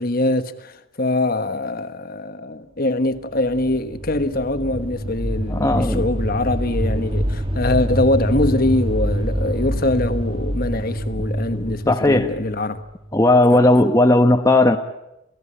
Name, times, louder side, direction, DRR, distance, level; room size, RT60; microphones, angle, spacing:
voice 1, 0.0-12.8 13.5-13.6, left 2 dB, 45° left, 1.3 m, -23 dB
sound 1, 3.3-13.1, equal, 25° right, 1.4 m, -25 dB
voice 2, 5.5-6.0 11.5-12.3 13.1-14.8, left 2 dB, 15° left, 1.0 m, -16 dB
29.5 x 16.5 x 10.0 m
head